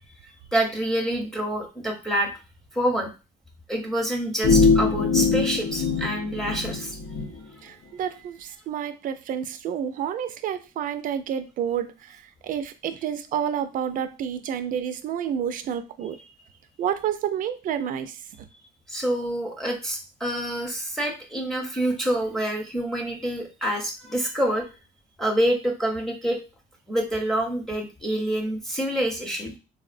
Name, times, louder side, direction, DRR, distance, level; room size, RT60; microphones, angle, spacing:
voice 1, 0.5-2.3 2.7-3.1 3.7-7.0 18.9-24.7 25.2-26.4 26.9-29.5, right 1 dB, ahead, 1 dB, 0.7 m, -27 dB
sound 1, 4.4-7.3, left 4 dB, 75° left, 0.7 m, -22 dB
voice 2, 7.6-16.2 16.8-18.2, right 9 dB, 55° right, 10 dB, 0.4 m, -29 dB
3.5 x 2.0 x 2.5 m, 0.29 s
cardioid pair, 110°, 17 cm